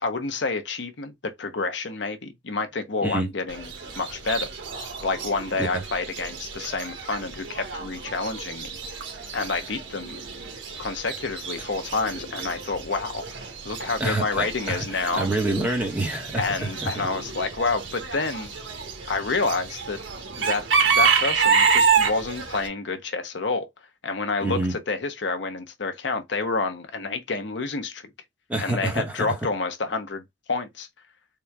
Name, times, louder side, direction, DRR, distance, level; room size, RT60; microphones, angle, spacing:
voice 1, 0.0-4.5 5.0-8.7 9.3-10.2 10.8-15.2 16.4-18.5 19.1-20.0 20.4-23.7 24.0-28.1 28.6-30.2 30.5-30.9, left 3 dB, 70° left, 0.8 m, -29 dB
Chicken rooster / Bird, 3.5-22.7, right 6 dB, 75° right, 1.1 m, -28 dB
voice 2, 14.0-17.1 24.4-24.7 28.5-29.4, right 2 dB, 5° right, 1.1 m, -27 dB
3.7 x 2.3 x 4.5 m
head